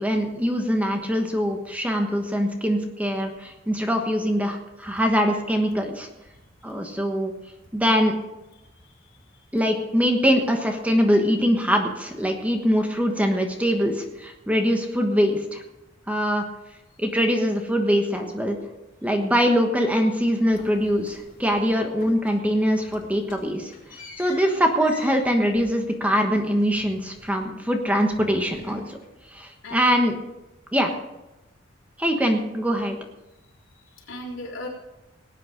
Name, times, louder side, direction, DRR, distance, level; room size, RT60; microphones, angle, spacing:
voice 1, 0.0-6.1 6.6-7.3 7.7-8.1 9.5-15.6 16.1-16.4 17.0-18.6 19.0-23.7 24.2-29.0 29.3-30.1 30.7-30.9 32.0-33.0, equal, 10° right, 3 dB, 1.2 m, -23 dB
voice 2, 8.7-9.5 24.0-24.1 29.6-30.2 30.8-31.0 33.7-34.7, left 2 dB, 70° left, -3 dB, 3.9 m, -39 dB
sound 1, 20.5-21.7 22.0-22.5 22.8-27.7 28.0-29.3, left 3 dB, 45° left, 5.2 m, -47 dB
18.5 x 9.2 x 5.1 m, 0.97 s
head